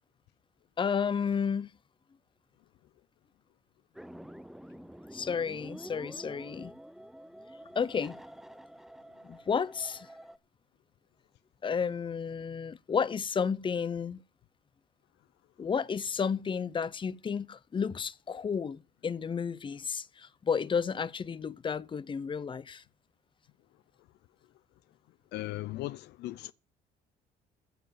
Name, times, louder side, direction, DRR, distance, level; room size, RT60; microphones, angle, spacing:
voice 1, 0.8-1.7 5.1-6.7 7.7-8.2 9.2-10.1 11.6-14.2 15.6-22.8, left 6 dB, 30° left, 0.8 m, -32 dB
sound 1, 3.9-10.4, right 1 dB, ahead, 0.7 m, -48 dB
voice 2, 25.3-26.5, left 17 dB, 80° left, 0.6 m, -37 dB
15.0 x 5.5 x 8.0 m
cardioid pair, 110°, 17 cm